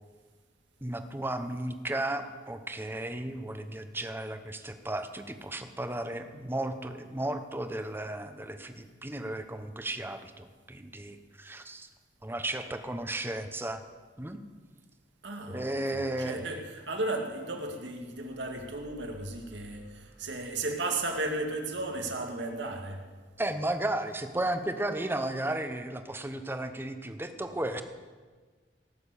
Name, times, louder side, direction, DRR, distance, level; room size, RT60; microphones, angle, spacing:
voice 1, 0.8-11.9 12.2-13.8 14.2-14.4 15.5-16.4 23.4-27.8, right 1 dB, 15° right, 8 dB, 0.9 m, -34 dB
voice 2, 15.2-23.0, right 2 dB, 90° right, 3 dB, 2.1 m, -35 dB
18.0 x 6.8 x 8.3 m, 1.4 s
head